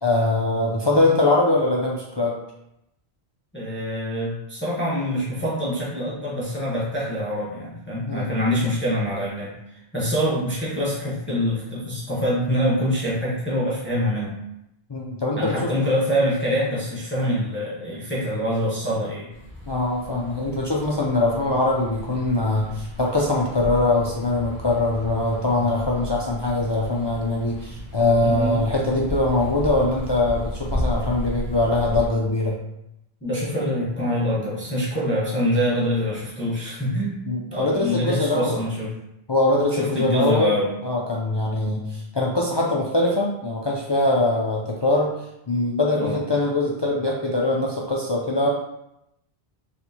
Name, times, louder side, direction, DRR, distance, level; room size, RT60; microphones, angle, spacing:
voice 1, 0.0-2.4 8.1-8.3 14.9-15.7 19.7-32.6 35.6-35.8 37.3-38.6 39.3-40.5 40.8-45.2 45.5-48.5, left 2 dB, 45° left, -3 dB, 0.3 m, -22 dB
voice 2, 3.5-14.4 15.4-19.3 28.2-28.6 33.2-37.2 37.5-38.9 39.7-40.7 46.0-46.2, equal, 10° left, -7 dB, 0.9 m, -25 dB
sound 1, 19.3-32.1, left 1 dB, 75° right, 1.7 m, -34 dB
4.4 x 3.2 x 2.8 m, 0.84 s
omnidirectional pair, 1.0 m